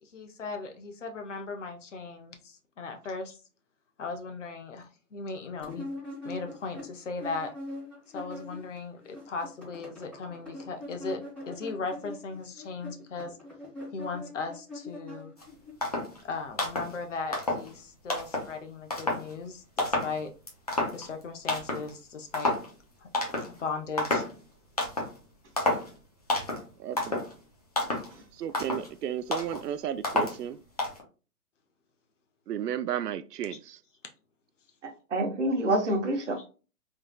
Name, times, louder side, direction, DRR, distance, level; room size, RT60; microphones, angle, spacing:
voice 1, 0.0-3.4 4.0-5.9 6.2-7.5 8.1-11.2 11.5-13.4 13.9-15.3 16.2-20.3 20.9-22.5 23.0-23.1 23.4-24.2 33.5-33.6, left 4 dB, 50° left, 0.8 m, -37 dB
sound 1, 5.6-8.8 9.0-15.7, left 2 dB, 5° left, 1.7 m, -42 dB
sound 2, 15.4-15.5 15.8-16.2 16.5-17.0 17.3-17.7 18.1-18.5 18.9-19.3 19.8-20.2 20.5-21.2 21.5-21.9 22.3-22.7 23.1-23.6 24.0-24.4 24.8-25.2 25.6-25.9 26.3-26.7 27.0-27.3 27.8-28.1 28.5-28.9 29.3-29.6 30.0-30.4 30.8-31.0, left 2 dB, 25° left, 0.5 m, -30 dB
voice 2, 26.8-27.2 28.3-30.6 32.5-33.8, right 10 dB, 85° right, 0.5 m, -33 dB
voice 3, 34.8-36.5, right 1 dB, 50° right, 1.1 m, -28 dB
3.4 x 3.2 x 2.3 m
hypercardioid pair, 160°, 46 cm